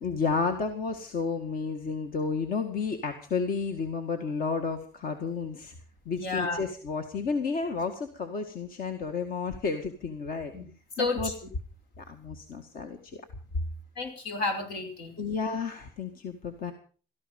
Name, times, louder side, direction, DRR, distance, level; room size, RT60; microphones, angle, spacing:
voice 1, 0.0-5.7 6.1-10.5 11.0-11.3 12.0-13.2 15.2-16.7, left 4 dB, 60° left, 6 dB, 2.0 m, -31 dB
voice 2, 6.2-6.6 10.5-10.6 11.0-11.3 14.0-15.2, left 3 dB, 85° left, 5 dB, 5.2 m, -31 dB
17.5 x 14.0 x 5.4 m, 0.41 s
cardioid pair, 110°, 17 cm